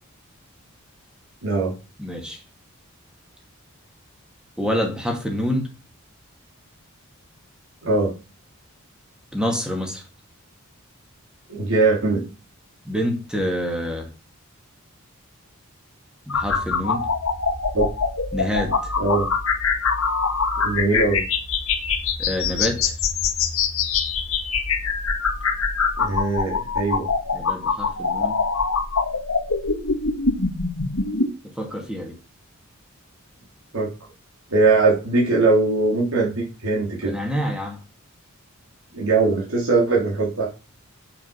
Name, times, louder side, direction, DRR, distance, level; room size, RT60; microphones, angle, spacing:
voice 1, 1.4-1.7 7.8-8.1 11.5-12.3 17.7-17.9 19.0-19.3 20.6-21.2 26.0-27.1 33.7-33.9 34.5-37.2 38.9-40.5, right 3 dB, 80° right, 3.2 m, -21 dB
voice 2, 2.0-2.4 4.6-5.7 9.3-10.0 12.8-14.1 16.3-17.1 18.3-18.9 22.2-22.9 27.3-28.4 31.4-32.2 37.0-37.8, equal, 5° right, 2.0 m, -27 dB
sound 1, 16.3-31.3, left 5 dB, 70° left, 1.7 m, -24 dB
7.9 x 7.2 x 5.6 m
head